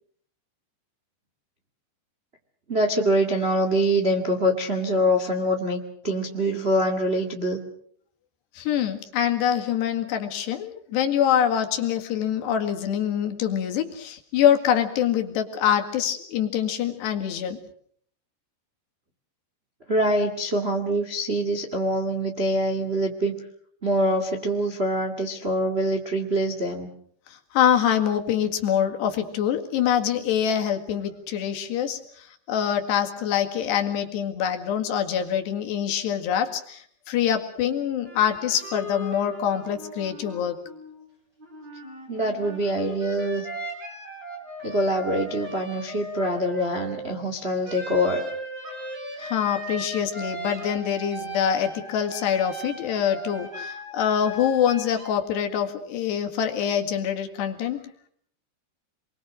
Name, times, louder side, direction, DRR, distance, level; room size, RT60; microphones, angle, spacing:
voice 1, 2.7-7.6 19.9-23.3 23.8-26.9 42.1-43.5 44.6-48.2, equal, 90° right, 4 dB, 0.5 m, -24 dB
voice 2, 8.6-17.6 27.3-40.7 49.2-57.9, left 9 dB, 70° left, 4 dB, 4.0 m, -25 dB
sound 1, 38.1-41.0 41.4-47.2 47.7-55.1, equal, 25° right, 6.1 m, -37 dB
28.0 x 22.5 x 6.4 m, 0.62 s
omnidirectional pair, 5.2 m